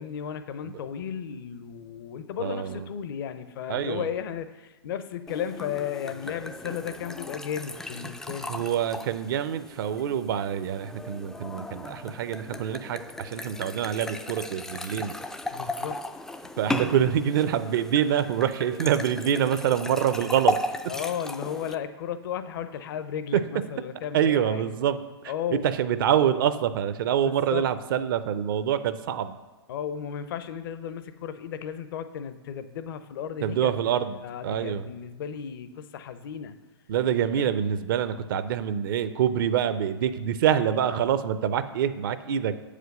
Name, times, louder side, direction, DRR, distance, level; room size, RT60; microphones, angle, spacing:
voice 1, 0.0-8.5 15.5-16.0 20.9-24.6 25.3-25.6 27.2-27.6 29.7-33.7 34.1-36.6 37.2-37.3, left 8 dB, 55° left, 11 dB, 0.6 m, -34 dB
voice 2, 2.4-2.8 3.7-4.1 8.5-15.2 16.6-20.6 23.3-23.4 24.1-25.0 25.6-29.4 33.4-34.9 36.9-42.5, right 9 dB, 50° right, 12 dB, 0.5 m, -26 dB
sound 1, 5.3-21.7, left 1 dB, 5° left, 0.3 m, -36 dB
7.7 x 5.1 x 6.5 m, 1.2 s
hypercardioid pair, 115°, 14 cm